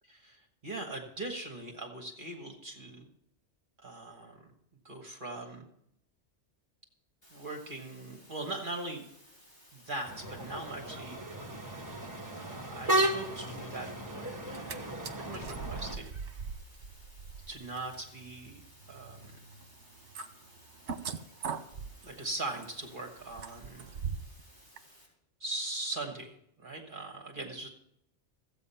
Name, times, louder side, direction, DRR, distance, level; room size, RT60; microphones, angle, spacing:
voice 1, 0.1-3.0 3.8-4.5 4.8-5.7 7.3-9.1 9.7-11.2 12.3-16.1 17.5-19.4 22.0-24.0 25.4-27.7, right 2 dB, 45° right, 2 dB, 1.6 m, -40 dB
sound 1, 7.2-25.1, equal, 40° left, 4.7 m, -59 dB
sound 2, 10.1-15.9, right 1 dB, 15° right, 1.3 m, -35 dB
sound 3, 14.5-14.8 15.0-24.4 24.8-24.9, right 6 dB, 70° right, 1.3 m, -42 dB
15.0 x 8.3 x 5.6 m, 0.76 s
omnidirectional pair, 1.2 m